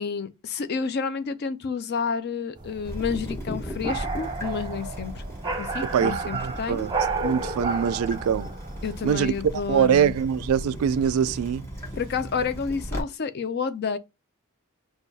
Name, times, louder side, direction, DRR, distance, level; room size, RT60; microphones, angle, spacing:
voice 1, 0.0-5.2 5.6-6.9 8.8-10.1 12.0-14.0, left 6 dB, 45° left, 0.4 m, -30 dB
sound 1, 2.6-9.1, right 4 dB, 20° right, 0.7 m, -32 dB
Water tap faucet / Drip, 2.8-13.0, equal, 10° left, 0.9 m, -36 dB
voice 2, 5.8-6.9 7.2-8.5 9.0-9.3 9.7-11.7, right 8 dB, 75° right, 0.3 m, -23 dB
6.2 x 2.3 x 2.7 m
head